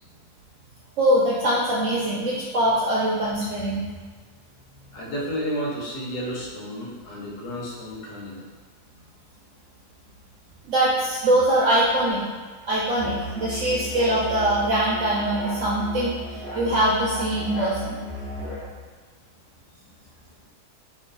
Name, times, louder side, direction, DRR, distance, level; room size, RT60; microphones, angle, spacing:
voice 1, 1.0-3.8 10.6-12.2 12.6-16.1 16.5-18.0, right 1 dB, 65° right, -6 dB, 0.8 m, -22 dB
voice 2, 4.9-8.4, equal, 90° left, -4 dB, 1.4 m, -31 dB
Musical instrument, 13.0-18.7, left 1 dB, 50° left, 1.0 m, -35 dB
3.0 x 2.5 x 3.7 m, 1.4 s
omnidirectional pair, 1.7 m